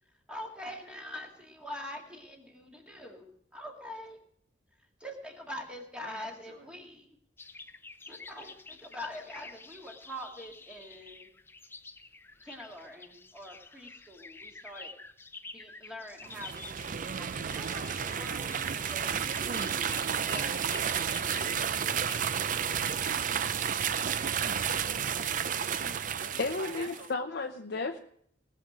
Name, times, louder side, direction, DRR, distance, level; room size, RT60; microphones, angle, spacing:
voice 1, 0.3-4.2 5.0-7.1 8.1-11.3 12.4-14.9 15.5-16.6 17.1-19.8 20.1-23.1, equal, 5° right, 1 dB, 2.0 m, -45 dB
voice 2, 6.0-6.6 24.4-27.2, right 1 dB, 75° right, -1 dB, 2.8 m, -49 dB
sound 1, 7.4-24.5, left 3 dB, 10° left, 0.5 m, -49 dB
sound 2, 16.2-27.1, right 8 dB, 45° right, 0.5 m, -32 dB
voice 3, 26.4-28.0, left 3 dB, 60° left, 4 dB, 0.6 m, -33 dB
18.5 x 6.7 x 6.2 m, 0.67 s
head